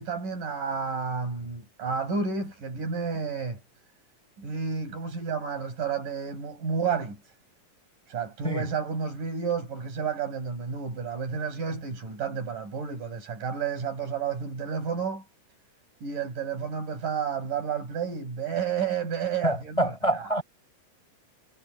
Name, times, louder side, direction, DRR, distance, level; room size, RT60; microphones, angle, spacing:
voice 1, 0.0-3.6 4.4-7.3 8.1-15.2 16.0-20.3, right 6 dB, 80° right, 8.2 m, -31 dB
voice 2, 19.4-20.4, right 1 dB, 10° left, 7.2 m, -26 dB
omnidirectional pair, 3.7 m